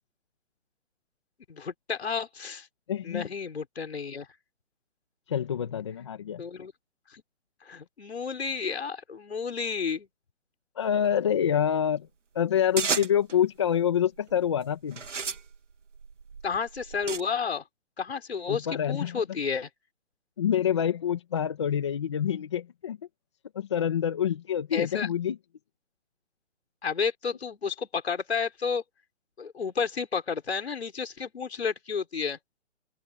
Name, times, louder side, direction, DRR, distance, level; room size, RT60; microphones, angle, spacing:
voice 1, 1.5-2.7 3.0-4.3 6.4-6.7 7.1-7.2 7.6-10.1 16.4-17.6 18.0-19.7 24.7-25.1 26.8-28.8 29.4-32.4, left 5 dB, 55° left, 5.8 m, -31 dB
voice 2, 2.9-3.3 5.3-6.4 10.8-12.1 12.3-15.0 18.5-19.2 20.4-23.0 23.6-25.4, left 9 dB, 25° left, 1.8 m, -27 dB
sound 1, 12.8-13.4 14.2-14.5 14.9-17.2, right 5 dB, 70° right, 3.6 m, -33 dB
hypercardioid pair, 180°, 37 cm